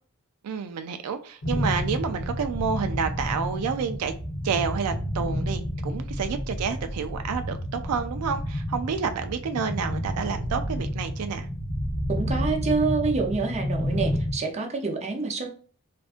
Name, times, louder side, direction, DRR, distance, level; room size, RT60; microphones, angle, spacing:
voice 1, 0.4-4.1 4.4-11.5, right 6 dB, 90° right, 8 dB, 0.4 m, -29 dB
sound 1, 1.4-14.3, equal, 55° left, 0.8 m, -30 dB
voice 2, 12.1-15.5, right 4 dB, 30° right, 2 dB, 0.6 m, -27 dB
3.5 x 2.6 x 2.4 m, 0.42 s
head